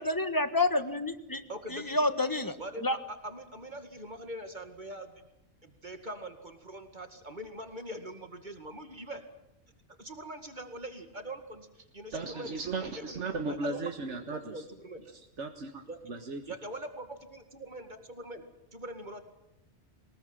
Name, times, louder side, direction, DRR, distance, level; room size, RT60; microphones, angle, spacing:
voice 1, 0.0-1.4 1.7-2.6 2.8-3.0, left 2 dB, 20° left, 10 dB, 1.4 m, -28 dB
voice 2, 1.5-2.0 2.6-5.2 5.6-9.2 10.0-13.9 14.3-15.0 15.8-16.0 16.5-18.4 18.7-19.2, right 1 dB, 40° right, 7 dB, 2.3 m, -43 dB
voice 3, 12.1-14.6 15.4-15.8 16.1-16.4, right 3 dB, 85° right, 4 dB, 1.9 m, -36 dB
23.0 x 20.0 x 9.1 m, 0.86 s
omnidirectional pair, 1.2 m